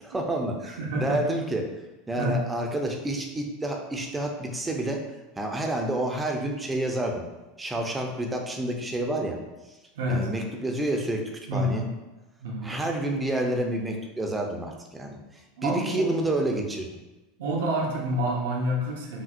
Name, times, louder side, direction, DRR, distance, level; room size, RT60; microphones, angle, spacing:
voice 1, 0.0-1.7 2.1-5.0 5.4-7.2 7.6-9.4 10.1-11.2 11.5-11.9 12.6-15.2 15.6-16.9, right 1 dB, 15° right, 2 dB, 0.7 m, -29 dB
voice 2, 0.8-1.2 2.2-2.4 10.0-10.3 11.5-11.8 12.4-12.7 15.6-16.2 17.4-19.2, equal, 60° right, -1 dB, 0.7 m, -28 dB
5.1 x 2.7 x 2.5 m, 1.1 s
figure-of-eight pair, 80°, 0 cm